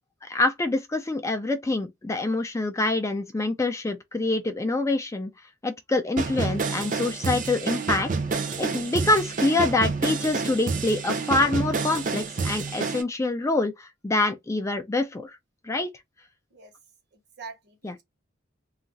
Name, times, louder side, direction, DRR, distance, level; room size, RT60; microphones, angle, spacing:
voice 1, 0.2-5.3 5.6-8.1 8.6-15.4 15.6-15.9 17.8-17.9, left 2 dB, 15° left, 0.4 m, -26 dB
sound 1, 6.2-13.0, right 4 dB, 45° right, 0.5 m, -29 dB
voice 2, 17.1-18.0, right 4 dB, 60° right, 1.0 m, -44 dB
2.4 x 2.0 x 3.9 m
head